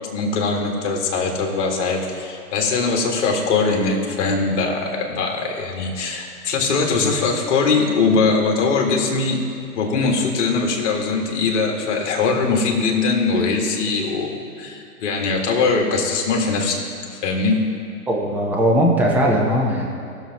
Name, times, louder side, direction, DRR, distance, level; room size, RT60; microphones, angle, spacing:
voice 1, 0.1-9.4 9.8-16.8 17.2-17.6, left 4 dB, 50° left, 1 dB, 2.1 m, -21 dB
voice 2, 18.1-19.9, equal, 5° right, -2 dB, 0.9 m, -19 dB
19.0 x 6.9 x 3.0 m, 2.5 s
hypercardioid pair, 125°, 46 cm